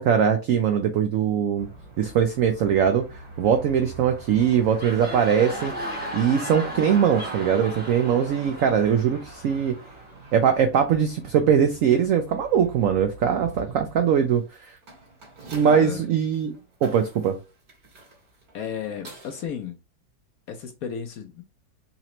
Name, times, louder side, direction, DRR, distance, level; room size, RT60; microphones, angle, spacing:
voice 1, 0.0-1.7 2.0-3.0 3.4-5.7 6.1-9.7 10.3-14.7 15.5-16.5 16.8-17.4, right 8 dB, 80° right, 0.7 m, -21 dB
sound 1, 1.6-19.5, right 2 dB, 55° right, 2.0 m, -43 dB
sound 2, 4.5-10.1, equal, 10° right, 0.6 m, -36 dB
voice 2, 15.6-16.0 18.5-19.8 20.5-21.4, left 7 dB, 70° left, 0.9 m, -33 dB
4.1 x 2.9 x 3.0 m
omnidirectional pair, 1.9 m